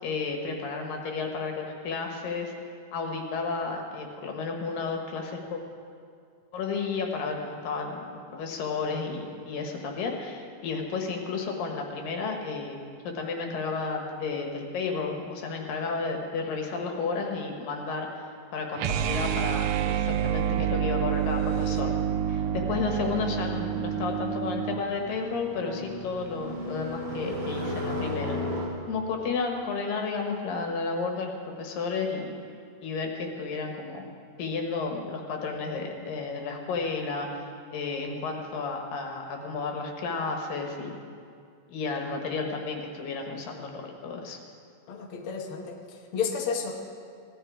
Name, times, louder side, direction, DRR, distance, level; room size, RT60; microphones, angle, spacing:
voice 1, 0.0-2.5 2.9-5.6 6.5-12.8 13.0-18.1 18.5-21.9 22.3-28.4 28.9-31.3 31.6-32.3 32.8-34.1 34.4-37.3 37.7-41.0 41.7-44.4, left 4 dB, 85° left, 2 dB, 3.1 m, -32 dB
sound 1, 18.7-24.8, right 10 dB, 80° right, 1.7 m, -28 dB
sound 2, 21.2-28.7, left 1 dB, 50° right, 3.9 m, -36 dB
voice 2, 44.9-46.7, left 6 dB, 55° left, 1 dB, 1.7 m, -32 dB
17.0 x 12.0 x 4.8 m, 2.3 s
omnidirectional pair, 3.8 m